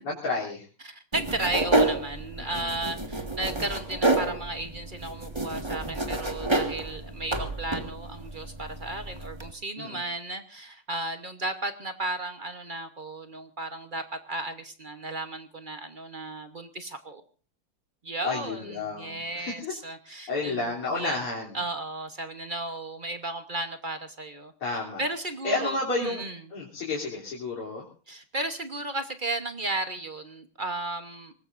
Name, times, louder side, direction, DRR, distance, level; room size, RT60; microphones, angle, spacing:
voice 1, 0.0-0.7 2.4-2.8 9.8-10.0 18.2-19.7 20.1-21.6 24.6-25.0 25.4-27.9, left 3 dB, 85° left, -6 dB, 4.3 m, -31 dB
voice 2, 0.8-17.2 18.0-21.2 21.5-24.5 25.0-26.4 28.1-31.3, right 2 dB, 35° right, 8 dB, 0.8 m, -34 dB
sound 1, 1.1-9.5, right 2 dB, 15° right, 1.5 m, -29 dB
24.5 x 19.5 x 2.6 m, 0.36 s
omnidirectional pair, 2.4 m